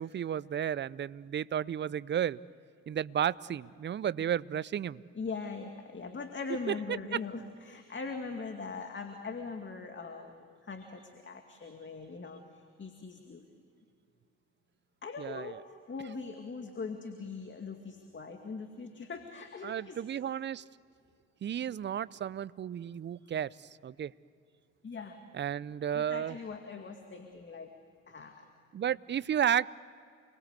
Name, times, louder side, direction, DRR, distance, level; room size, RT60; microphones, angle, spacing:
voice 1, 0.0-2.4 2.9-5.0 15.2-15.6 19.6-20.6 21.4-23.5 23.8-24.1 25.3-26.4 28.7-29.7, right 9 dB, 25° right, 21 dB, 0.6 m, -32 dB
voice 2, 5.1-13.4 15.0-20.0 24.8-25.2 25.9-27.7 28.1-28.5, left 4 dB, 30° left, 5 dB, 2.3 m, -41 dB
29.5 x 22.0 x 8.2 m, 2.3 s
hypercardioid pair, 65°, 40 cm